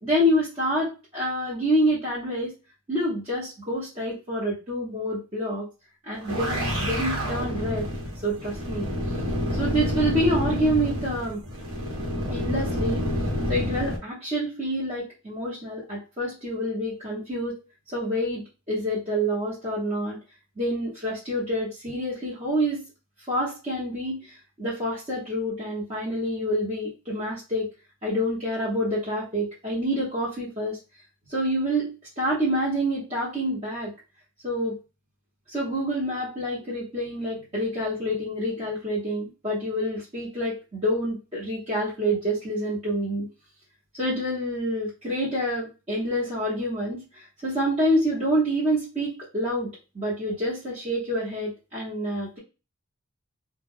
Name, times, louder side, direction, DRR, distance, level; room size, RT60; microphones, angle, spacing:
voice 1, 0.0-2.5 2.9-5.7 6.1-7.9 8.2-8.9 9.5-11.4 12.3-13.1 13.5-17.6 17.9-20.2 20.6-22.8 23.3-27.7 28.0-30.8 31.3-33.9 34.4-34.8 35.5-43.3 43.9-49.7 49.9-52.4, equal, 25° right, -9 dB, 0.9 m, -27 dB
sound 1, 6.1-14.0, equal, 80° right, 1.1 m, -28 dB
2.3 x 2.2 x 3.5 m, 0.31 s
head